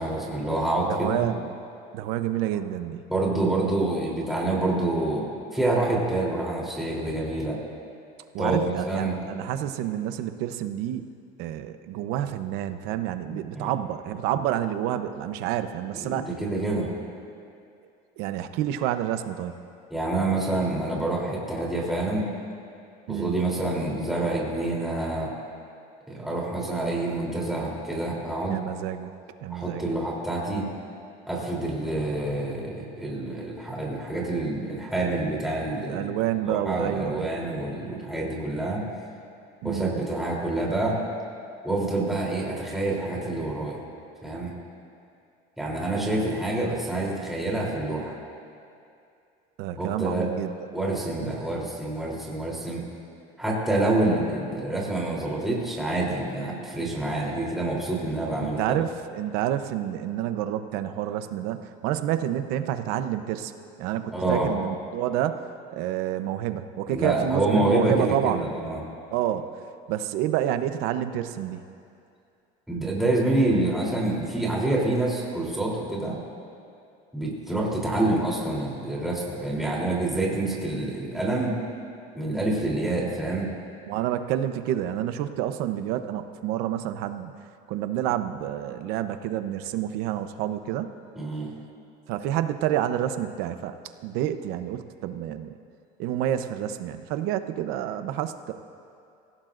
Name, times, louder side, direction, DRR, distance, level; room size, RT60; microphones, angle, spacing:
voice 1, 0.0-1.2 3.1-7.6 8.4-9.2 13.2-13.7 15.9-16.9 19.9-22.3 23.1-25.3 26.1-28.6 29.5-30.7 31.3-36.1 36.5-38.8 39.6-41.0 41.6-43.8 44.2-44.5 45.6-48.2 49.8-50.3 50.7-52.8 53.4-58.8 64.1-64.5 66.9-68.8 72.7-76.2 77.1-81.6 82.2-83.5 91.2-91.5, right 2 dB, ahead, -5 dB, 3.4 m, -27 dB
voice 2, 0.9-1.5 1.9-3.1 8.3-11.1 11.4-16.3 18.2-19.7 23.1-23.3 28.5-29.1 29.4-29.9 35.8-37.3 39.6-39.9 49.6-50.5 51.2-51.4 58.4-63.5 63.8-68.4 69.1-69.5 69.9-71.6 83.9-87.3 87.7-90.9 92.1-93.7 94.0-95.6 96.0-98.5, right 11 dB, 70° right, 9 dB, 0.8 m, -29 dB
27.5 x 16.5 x 2.6 m, 2.5 s
cardioid pair, 140°, 17 cm